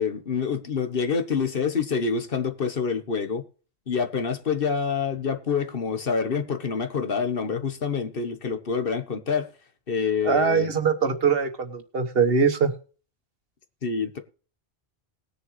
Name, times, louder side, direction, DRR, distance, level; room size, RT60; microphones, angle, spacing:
voice 1, 0.0-3.4 3.9-9.5 9.9-10.7 13.8-14.2, left 5 dB, 60° left, 1.3 m, -27 dB
voice 2, 10.2-12.7, right 5 dB, 65° right, 1.4 m, -22 dB
20.0 x 6.9 x 3.2 m
omnidirectional pair, 1.1 m